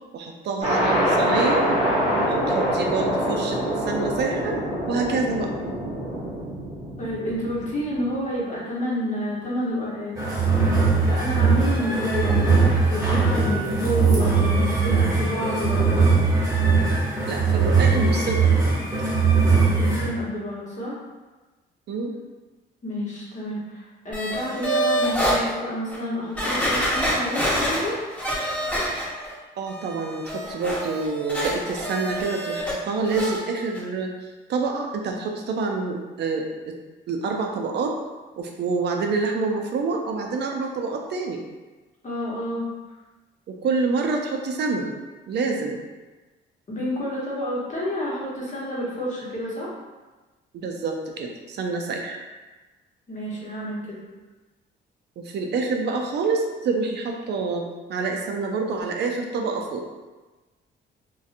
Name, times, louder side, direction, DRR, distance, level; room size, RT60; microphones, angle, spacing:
voice 1, 0.1-1.7 2.2-3.6 3.9-4.6 4.9-5.5 17.3-18.7 21.9-22.1 29.6-36.7 37.1-37.9 38.4-41.4 43.5-45.0 45.3-45.8 50.5-52.2 55.2-57.6 57.9-59.8, right 4 dB, 60° right, 2 dB, 0.4 m, -27 dB
sound 1, 0.6-8.2, equal, 30° right, 0.9 m, -25 dB
voice 2, 7.0-16.1 19.7-21.0 22.8-28.0 42.0-42.6 46.7-49.7 53.1-54.0, left 1 dB, 40° left, -6 dB, 1.0 m, -29 dB
sound 2, 10.1-20.0, right 4 dB, 15° right, 1.2 m, -20 dB
sound 3, 24.1-25.4 25.9-26.0 26.4-29.3 29.7-32.8 33.0-33.4 33.7-33.8, equal, 5° left, 1.0 m, -26 dB
2.6 x 2.2 x 2.5 m, 1.2 s
cardioid pair, 90°, 20 cm